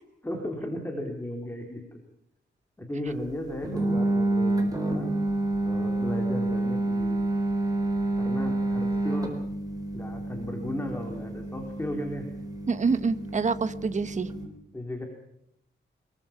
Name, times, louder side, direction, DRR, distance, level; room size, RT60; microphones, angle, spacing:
voice 1, 0.2-1.8 2.8-5.1 5.7-7.2 8.2-9.3 9.9-12.2 14.7-15.1, left 1 dB, 10° left, 2 dB, 3.4 m, -35 dB
sound 1, 3.6-14.4, right 2 dB, 20° right, 4.2 m, -29 dB
voice 2, 12.7-14.3, right 4 dB, 35° right, 12 dB, 1.1 m, -26 dB
24.0 x 22.5 x 5.8 m, 0.78 s
wide cardioid pair, 160°, 20 cm